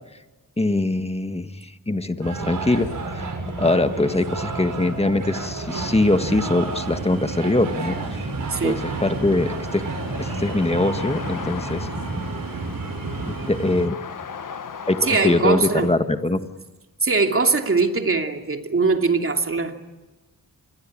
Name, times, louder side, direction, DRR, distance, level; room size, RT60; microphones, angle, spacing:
voice 1, 0.6-3.3 3.6-8.3 8.6-9.8 10.2-11.9 13.3-14.0 14.9-16.4, left 2 dB, 15° left, 9 dB, 1.7 m, -22 dB
sound 1, 2.2-13.5, right 3 dB, 60° right, 5.7 m, -32 dB
sound 2, 5.7-13.9, right 4 dB, 75° right, 4.2 m, -34 dB
voice 2, 8.5-8.8 15.0-15.9 17.0-19.8, right 4 dB, 40° right, 4 dB, 2.9 m, -21 dB
sound 3, 8.6-16.0, left 6 dB, 65° left, 1.4 m, -38 dB
27.5 x 21.5 x 8.9 m, 1.1 s
wide cardioid pair, 90°, 35 cm